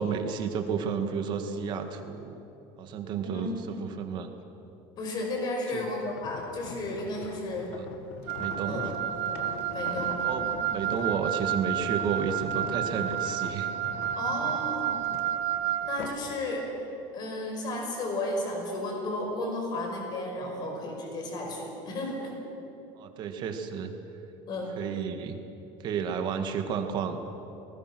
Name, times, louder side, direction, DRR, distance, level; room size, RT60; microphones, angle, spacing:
voice 1, 0.0-2.4 2.8-4.3 5.7-5.8 7.7-7.9 8.4-8.9 10.2-13.7 23.0-23.9 24.8-25.4 25.8-27.2, right 6 dB, 40° right, 6 dB, 1.8 m, -32 dB
voice 2, 3.2-3.6 5.0-7.7 8.7-9.0 9.7-10.2 14.2-15.0 15.8-16.7 17.1-22.4 24.5-24.7, left 2 dB, 35° left, 1 dB, 5.5 m, -33 dB
sound 1, 6.1-16.3 16.8-17.0, left 7 dB, 55° left, 1.6 m, -42 dB
Wind instrument woodwind instrument, 8.3-16.0, right 11 dB, 55° right, 1.1 m, -31 dB
29.0 x 19.5 x 6.2 m, 2.9 s
cardioid pair, 165°, 12 cm